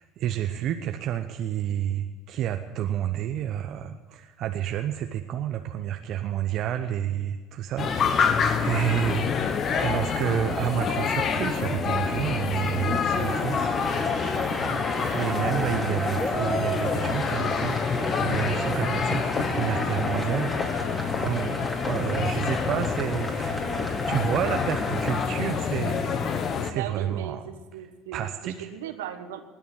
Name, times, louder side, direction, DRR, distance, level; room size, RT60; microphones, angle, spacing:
voice 1, 0.0-9.5 9.8-13.8 14.4-23.6 24.1-26.3 26.6-27.5 28.1-28.7, right 10 dB, 55° right, 7 dB, 0.8 m, -30 dB
sound 1, 7.8-26.7, left 6 dB, 40° left, 1.2 m, -27 dB
sound 2, 12.9-25.2, equal, 10° left, 2.8 m, -33 dB
voice 2, 26.7-29.4, right 10 dB, 75° right, 8 dB, 1.2 m, -37 dB
20.0 x 7.0 x 9.4 m, 1.3 s
hypercardioid pair, 65°, 0 cm